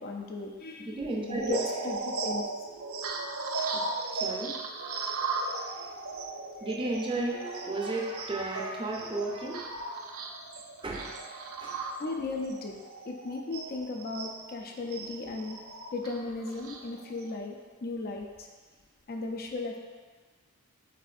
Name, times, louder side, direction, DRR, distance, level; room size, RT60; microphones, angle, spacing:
voice 1, 0.0-1.0 1.3-1.6 1.8-2.4 12.0-15.6 15.9-18.5 19.1-19.8, left 3 dB, 45° left, 2 dB, 0.4 m, -36 dB
voice 2, 0.8-1.6 2.3-2.4 3.7-3.8 4.1-4.5 6.6-9.6 10.8-11.2 11.6-11.8, right 2 dB, 25° right, -2 dB, 0.5 m, -33 dB
sound 1, 1.2-14.4 14.9-17.3, right 3 dB, 70° right, 0.4 m, -37 dB
7.4 x 2.6 x 2.5 m, 1.4 s
head